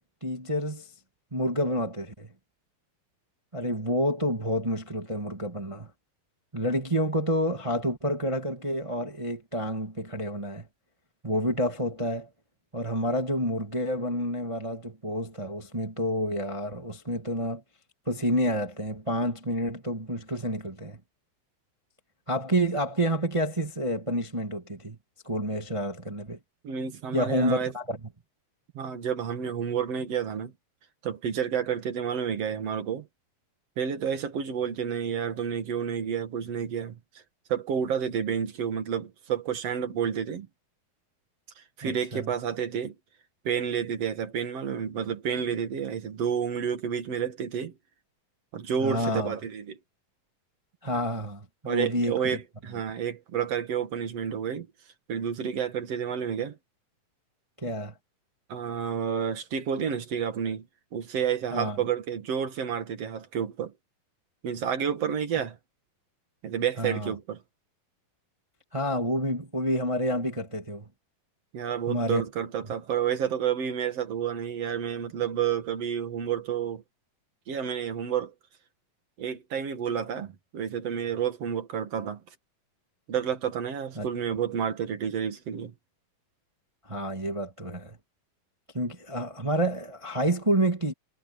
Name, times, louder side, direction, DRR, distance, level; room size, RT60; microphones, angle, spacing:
voice 1, 0.2-0.9 1.3-2.3 3.5-5.9 6.5-10.7 11.2-12.3 12.7-17.6 18.0-21.0 22.3-25.0 25.2-26.4 27.1-28.0 41.8-42.3 48.8-49.3 50.8-52.4 57.6-57.9 61.5-61.8 66.8-67.1 68.7-70.9 71.9-72.2 83.9-84.1 86.8-88.0 88.7-90.9, equal, 30° right, 0.5 m, -29 dB
voice 2, 26.6-27.7 28.7-30.5 31.0-33.1 33.8-37.0 37.5-40.5 41.8-43.0 43.4-47.8 48.5-49.8 51.7-54.7 55.1-56.6 58.5-60.7 60.9-63.7 64.4-65.6 66.4-67.4 71.5-76.8 77.5-78.3 79.2-82.2 83.1-85.7, right 8 dB, 50° right, 2.6 m, -30 dB
omnidirectional pair, 4.1 m